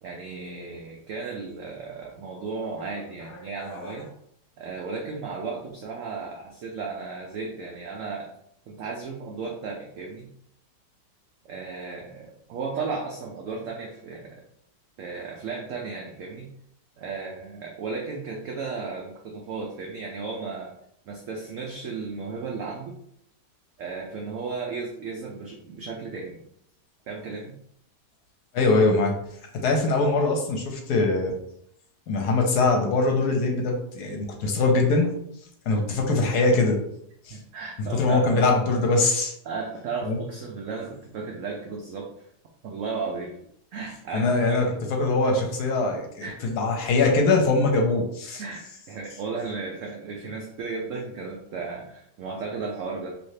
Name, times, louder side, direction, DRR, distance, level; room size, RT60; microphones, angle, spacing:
voice 1, 0.0-4.1 4.6-8.3 8.7-10.3 11.4-14.4 15.0-16.5 17.0-20.8 21.1-23.0 23.8-26.4 27.1-27.5 37.3-38.4 39.4-42.3 42.6-43.4 43.7-44.6 46.2-46.4 48.4-53.2, right 4 dB, 80° right, 0 dB, 0.7 m, -34 dB
voice 2, 28.5-29.2 29.5-31.4 32.1-35.1 35.7-36.8 37.2-37.4 37.9-39.3 40.0-40.2 44.1-48.4, left 3 dB, 70° left, 2 dB, 1.1 m, -22 dB
3.2 x 2.8 x 2.7 m, 0.72 s
omnidirectional pair, 1.9 m